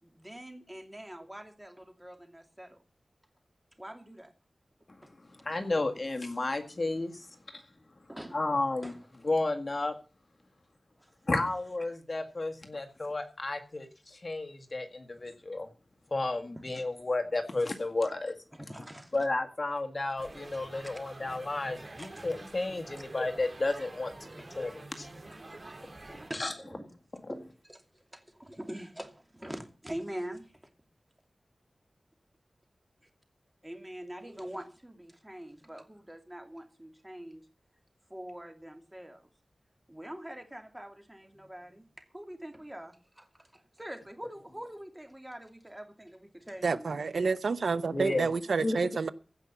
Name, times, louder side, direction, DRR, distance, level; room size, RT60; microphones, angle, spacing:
voice 1, 0.0-2.8 3.8-4.3 5.0-5.1 8.1-8.4 8.8-9.0 11.0-11.1 18.5-19.2 22.0-22.3 24.3-24.6 25.3-25.4 25.7-25.9 26.2-26.9 27.2-30.6 33.0-33.1 33.6-37.5 38.1-39.3 39.9-47.0, right 1 dB, 15° right, 2.6 m, -44 dB
voice 2, 5.4-7.3 7.5-7.6 8.3-8.9 9.2-9.9 11.3-15.7 16.1-18.3 19.1-24.3 24.5-25.1 26.1-26.5 47.9-48.3 48.6-48.9, left 2 dB, 45° left, 1.9 m, -32 dB
sound 1, 20.2-26.3, right 2 dB, 40° right, 2.3 m, -47 dB
voice 3, 46.6-49.1, right 4 dB, 90° right, 0.5 m, -29 dB
15.5 x 5.7 x 7.1 m
wide cardioid pair, 70°, 0 cm